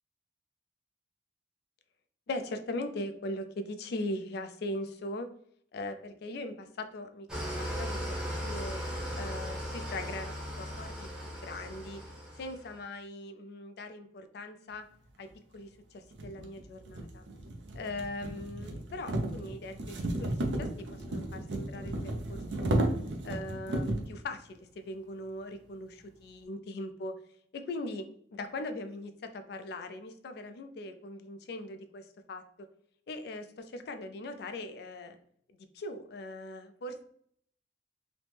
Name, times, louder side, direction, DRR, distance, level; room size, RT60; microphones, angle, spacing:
voice 1, 2.3-5.3 5.7-8.8 9.1-12.0 12.4-14.9 15.2-17.2 17.7-22.9 23.2-27.2 27.5-32.4 33.1-35.2 35.5-37.0, left 2 dB, 65° left, 8 dB, 0.4 m, -40 dB
Engine starting / Idling, 7.3-12.7, equal, 5° right, 0.7 m, -37 dB
sound 1, 15.3-15.4 16.1-24.1, right 1 dB, 80° right, 0.5 m, -34 dB
3.0 x 2.0 x 3.2 m, 0.66 s
head